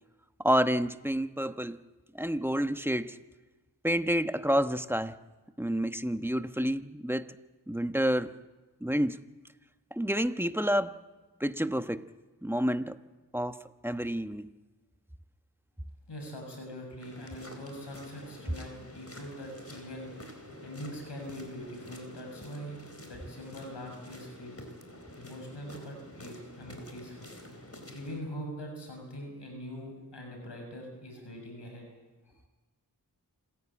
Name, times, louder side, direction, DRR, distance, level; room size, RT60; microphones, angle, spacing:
voice 1, 0.4-1.8 2.1-3.2 3.8-5.2 5.6-7.3 7.7-8.3 8.8-9.2 9.9-10.9 11.4-12.0 12.4-13.0 13.3-14.5, equal, 5° right, 9 dB, 1.1 m, -29 dB
voice 2, 16.1-20.1 20.6-24.7 25.2-27.3 27.9-31.9, equal, 85° left, 2 dB, 6.8 m, -43 dB
sound 1, 17.0-28.2, left 1 dB, 35° left, 4.6 m, -48 dB
27.0 x 15.0 x 8.7 m, 1.2 s
cardioid pair, 50°, 41 cm